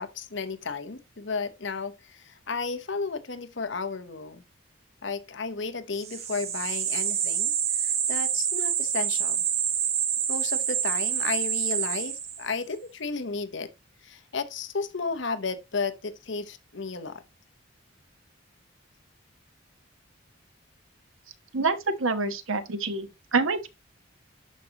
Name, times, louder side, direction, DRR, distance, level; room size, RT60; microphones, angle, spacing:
voice 1, 0.0-4.4 5.0-7.5 7.8-9.4 10.3-13.7 14.0-17.2, left 4 dB, 65° left, 0.9 m, -33 dB
sound 1, 6.0-12.6, right 8 dB, 30° right, 1.1 m, -27 dB
voice 2, 21.5-23.7, right 3 dB, 80° right, 1.2 m, -27 dB
12.0 x 5.0 x 2.9 m
head